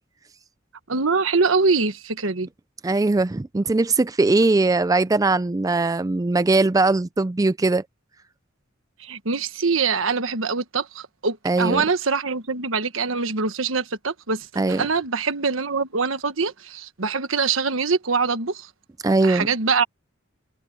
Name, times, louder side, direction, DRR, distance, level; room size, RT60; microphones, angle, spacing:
voice 1, 0.9-2.5 9.0-18.7 19.2-19.8, right 4 dB, 85° right, 1.4 m, -24 dB
voice 2, 2.8-7.8 11.4-11.8 14.6-14.8 19.0-19.5, right 3 dB, 15° right, 0.4 m, -20 dB
head